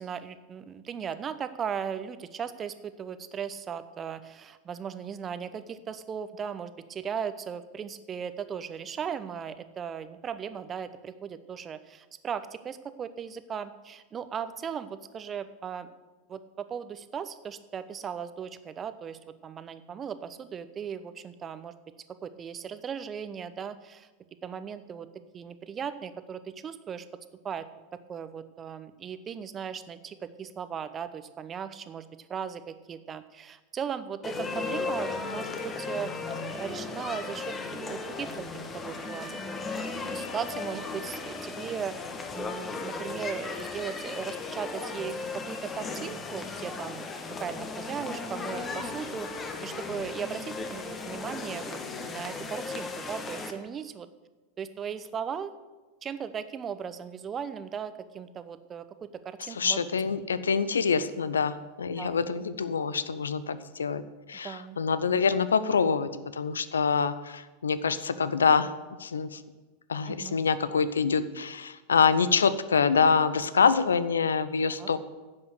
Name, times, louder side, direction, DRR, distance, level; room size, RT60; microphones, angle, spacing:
voice 1, 0.0-15.9 16.3-21.7 22.2-24.1 24.4-25.1 25.3-27.1 27.4-27.6 27.9-36.1 36.5-39.4 40.1-42.0 42.3-47.0 47.4-54.1 54.6-55.5 56.0-59.8 62.0-62.2 64.4-64.8 70.1-70.4 74.8-74.9, right 7 dB, 30° right, 12 dB, 0.9 m, -37 dB
sound 1, 34.2-53.5, left 3 dB, 20° left, 1.5 m, -36 dB
voice 2, 59.6-64.0 64.3-68.7 69.0-69.4 69.9-75.0, left 5 dB, 75° left, 14 dB, 0.6 m, -25 dB
10.5 x 7.8 x 8.0 m, 1.2 s
figure-of-eight pair, 85°, 0 cm